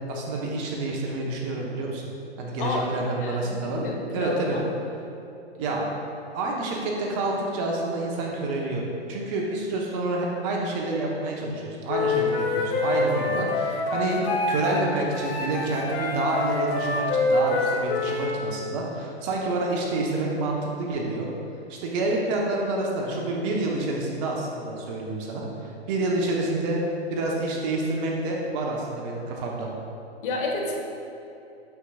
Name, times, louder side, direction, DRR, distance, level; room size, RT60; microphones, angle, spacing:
voice 1, 0.1-2.1 2.4-3.8 4.1-4.6 5.6-5.9 6.3-14.2 14.5-21.3 21.7-26.8 27.1-29.7, right 2 dB, 30° right, -1 dB, 0.9 m, -28 dB
voice 2, 3.2-4.4 14.1-14.3 30.2-30.7, left 2 dB, 50° left, 0 dB, 1.3 m, -30 dB
Wind instrument woodwind instrument, 11.9-14.8 15.1-18.3, left 3 dB, 25° left, 0.7 m, -26 dB
8.2 x 6.6 x 2.3 m, 2.9 s
hypercardioid pair, 130°, 33 cm